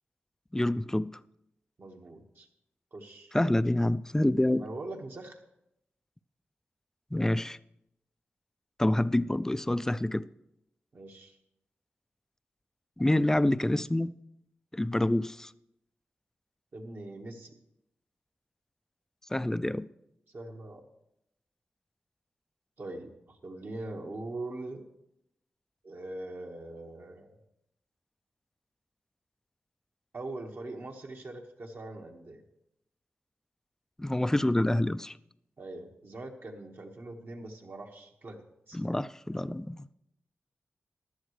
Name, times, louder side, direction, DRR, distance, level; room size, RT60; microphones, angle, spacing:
voice 1, 0.5-1.1 3.3-4.6 7.1-7.6 8.8-10.2 13.0-14.1 14.7-15.5 19.3-19.9 34.0-35.1 38.7-39.9, left 1 dB, 10° left, 0.3 m, -27 dB
voice 2, 1.8-2.5 2.9-3.3 4.6-5.4 10.9-11.4 16.7-17.6 20.3-20.8 22.8-24.9 25.8-27.3 30.1-32.4 35.6-38.8, right 2 dB, 60° right, 1.6 m, -42 dB
15.0 x 11.0 x 3.2 m
cardioid pair, 65°, 4 cm